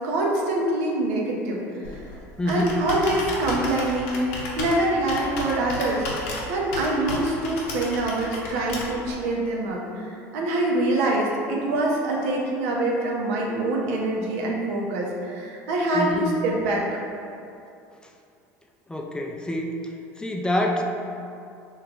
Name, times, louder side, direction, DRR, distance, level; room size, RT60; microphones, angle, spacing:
voice 1, 0.0-1.6 2.5-6.1 6.5-16.9, right 1 dB, 80° right, -2 dB, 0.6 m, -25 dB
Computer keyboard, 1.8-9.1, left 2 dB, 80° left, 0.6 m, -33 dB
voice 2, 2.4-2.8 15.9-16.3 18.9-19.7 20.2-20.8, left 1 dB, 10° left, 1 dB, 0.3 m, -26 dB
3.1 x 2.2 x 3.7 m, 2.6 s
supercardioid pair, 90°, 8 cm